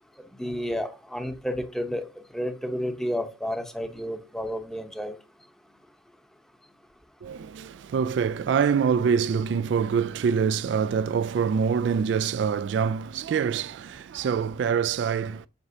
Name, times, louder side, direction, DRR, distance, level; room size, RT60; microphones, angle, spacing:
voice 1, 0.4-2.1 2.3-5.2, equal, ahead, 0.9 m, -31 dB
voice 2, 7.2-15.5, right 6 dB, 75° right, 0.3 m, -25 dB
8.0 x 6.0 x 2.7 m
head